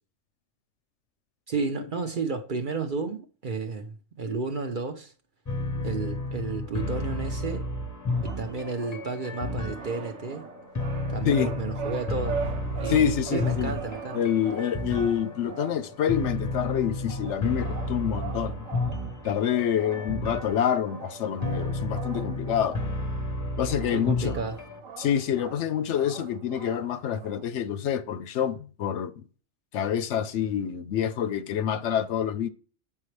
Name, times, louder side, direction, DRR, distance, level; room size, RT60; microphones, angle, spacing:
voice 1, 1.5-5.1 5.8-7.7 8.2-10.5 11.1-12.4 12.8-14.2 23.9-24.6, right 4 dB, 50° right, 0.7 m, -32 dB
sound 1, 5.5-24.8, left 2 dB, 20° left, 0.6 m, -32 dB
sound 2, 8.1-27.5, right 6 dB, 90° right, 1.2 m, -41 dB
voice 2, 12.9-13.7 14.1-18.6 19.2-22.8 23.6-24.4 25.0-29.1 29.7-32.5, left 9 dB, 70° left, 0.8 m, -27 dB
7.3 x 5.6 x 3.2 m
omnidirectional pair, 1.3 m